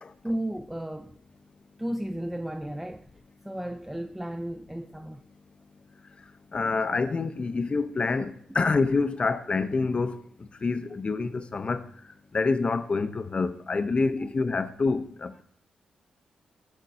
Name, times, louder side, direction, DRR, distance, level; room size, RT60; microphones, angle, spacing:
voice 1, 0.2-1.2 1.8-3.1 3.4-5.2, right 1 dB, 10° right, 0.4 m, -33 dB
voice 2, 6.5-11.9 12.3-15.4, left 4 dB, 45° left, 0.6 m, -27 dB
10.5 x 4.5 x 2.6 m
supercardioid pair, 45°, 3 cm